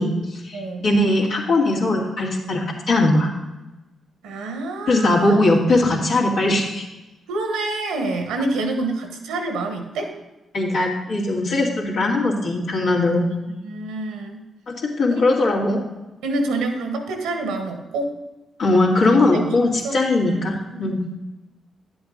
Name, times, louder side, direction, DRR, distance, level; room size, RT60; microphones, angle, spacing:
voice 1, 0.0-3.3 4.9-6.8 10.5-13.3 14.7-15.8 18.6-21.0, left 2 dB, 75° left, -3 dB, 2.4 m, -20 dB
voice 2, 0.5-0.9 4.2-5.4 7.3-10.1 13.6-14.4 15.1-15.2 16.2-18.2 19.3-20.4 20.7-20.9, right 2 dB, 85° right, 5 dB, 1.3 m, -27 dB
10.5 x 7.8 x 3.9 m, 1.0 s
hypercardioid pair, 40°, 0 cm